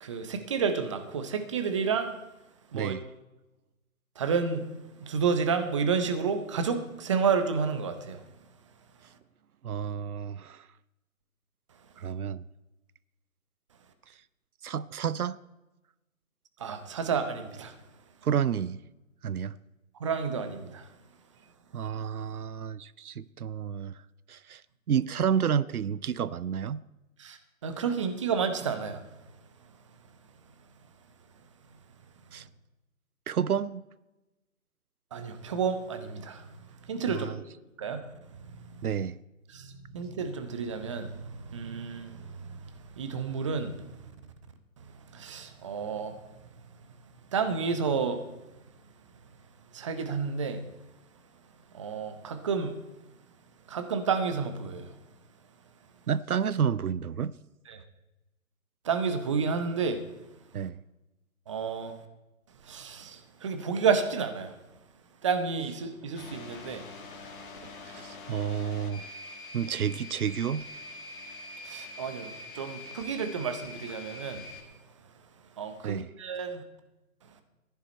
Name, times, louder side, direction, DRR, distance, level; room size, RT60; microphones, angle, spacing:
voice 1, 0.0-2.2 2.7-2.9 4.2-4.7 5.0-8.2 16.6-17.7 19.9-20.9 27.2-29.0 35.1-37.3 37.8-38.1 38.4-38.9 39.5-44.1 44.9-46.2 47.3-48.2 49.7-50.6 51.7-52.8 53.7-55.0 57.7-57.8 58.8-60.0 61.5-62.0 62.7-64.5 65.2-66.9 71.6-74.5 75.6-76.6, right 5 dB, 20° right, 0.7 m, -31 dB
voice 2, 2.7-3.0 9.6-10.7 12.0-12.4 14.6-15.4 18.2-18.8 19.2-19.6 21.7-24.0 24.3-24.6 24.9-26.8 32.3-32.5 33.3-33.8 37.1-37.4 38.8-39.2 56.1-57.3 60.5-60.8 67.9-69.1 69.5-70.7 75.8-76.1, right 8 dB, 90° right, 0.6 m, -30 dB
sound 1, 66.1-74.6, left 2 dB, 35° left, 2.0 m, -44 dB
15.0 x 10.5 x 4.3 m
figure-of-eight pair, 145°, 43 cm